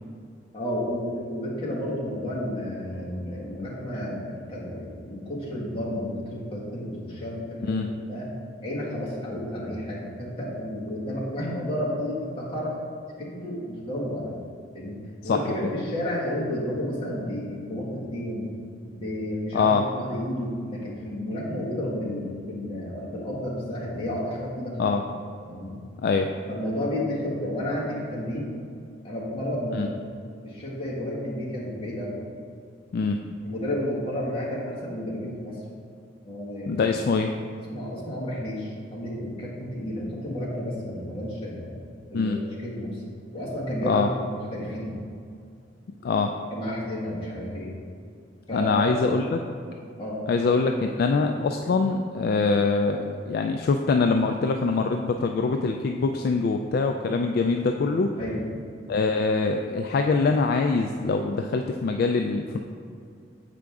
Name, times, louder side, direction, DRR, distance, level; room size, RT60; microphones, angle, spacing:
voice 1, 0.5-7.8 8.1-8.3 8.6-12.8 13.2-14.3 14.7-15.0 15.2-18.5 18.9-24.8 25.4-25.8 26.5-28.5 29.0-30.0 30.4-32.1 33.4-35.6 36.2-36.9 37.6-41.7 42.1-43.0 43.3-44.2 44.5-45.0 46.5-47.7 48.5-49.0 50.0-50.2 58.2-58.4, left 1 dB, 30° left, -7 dB, 1.6 m, -31 dB
voice 2, 19.5-19.8 24.8-25.0 26.0-26.3 29.8-29.9 32.9-33.2 36.7-37.3 42.1-42.4 43.8-44.1 46.0-46.3 48.5-49.4 50.3-58.1 58.9-62.6, left 4 dB, 55° left, 4 dB, 0.3 m, -24 dB
7.5 x 5.0 x 3.5 m, 2.3 s
head